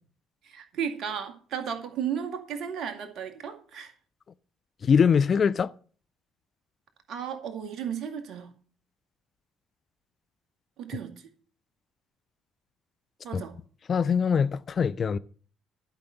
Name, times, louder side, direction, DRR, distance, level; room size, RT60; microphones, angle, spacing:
voice 1, 0.4-3.9 7.1-8.5 10.8-11.1 13.2-13.5, right 8 dB, 55° right, 2.0 m, -34 dB
voice 2, 4.8-5.7 10.9-11.0 13.3-13.4 13.9-15.2, left 6 dB, 40° left, 0.5 m, -23 dB
12.0 x 5.8 x 7.8 m
figure-of-eight pair, 50°, 0 cm